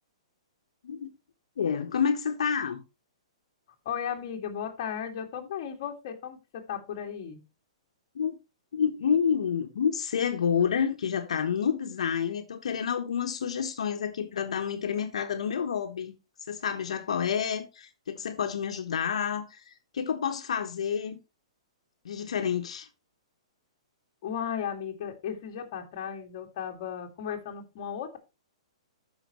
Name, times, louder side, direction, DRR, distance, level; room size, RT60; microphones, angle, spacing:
voice 1, 1.6-2.8 8.1-8.4 8.7-16.2 16.5-21.2 22.0-22.9, left 7 dB, 70° left, 1.3 m, -29 dB
voice 2, 3.8-7.4 24.2-28.2, left 8 dB, 35° left, 2.3 m, -35 dB
13.5 x 5.9 x 3.1 m
hypercardioid pair, 175°, 3 cm